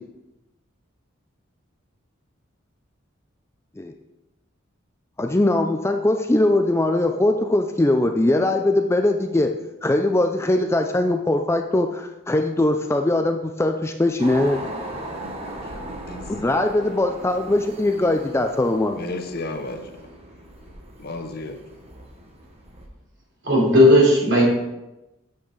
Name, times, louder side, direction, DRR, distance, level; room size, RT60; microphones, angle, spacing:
voice 1, 5.2-9.6 9.8-14.6 16.3-19.0, left 1 dB, 15° left, 5 dB, 0.4 m, -21 dB
sound 1, 14.2-22.9, right 1 dB, 30° right, 1.1 m, -38 dB
voice 2, 19.0-20.1 21.0-21.6, left 2 dB, 50° left, 6 dB, 0.8 m, -33 dB
voice 3, 23.4-24.4, left 1 dB, 60° right, -4 dB, 3.4 m, -15 dB
8.6 x 6.5 x 4.0 m, 0.97 s
head